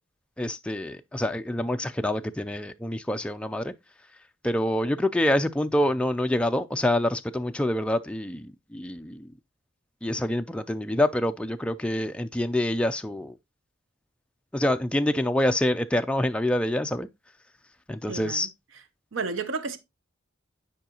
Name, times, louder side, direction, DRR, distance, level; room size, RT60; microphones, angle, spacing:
voice 1, 0.4-3.7 4.4-9.3 10.0-13.4 14.5-17.1 17.9-18.5, left 1 dB, 5° left, 0.3 m, -26 dB
voice 2, 18.1-18.5 19.1-19.8, right 4 dB, 75° right, 0.7 m, -31 dB
9.2 x 4.7 x 2.9 m
head